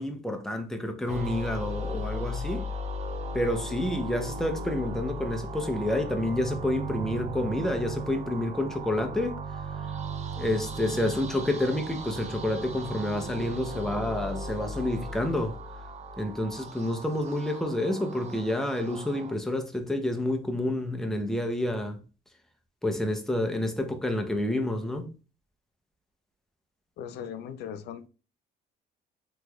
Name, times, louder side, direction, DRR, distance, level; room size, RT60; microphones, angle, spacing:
voice 1, 0.0-2.7 3.3-9.9 10.4-15.6 16.2-22.0 22.8-25.1, left 1 dB, 5° left, 0.6 m, -29 dB
sound 1, 1.1-19.3, right 1 dB, 40° right, 0.5 m, -37 dB
voice 2, 27.0-28.1, left 8 dB, 70° left, 0.5 m, -38 dB
3.3 x 3.0 x 2.3 m
cardioid pair, 110°, 17 cm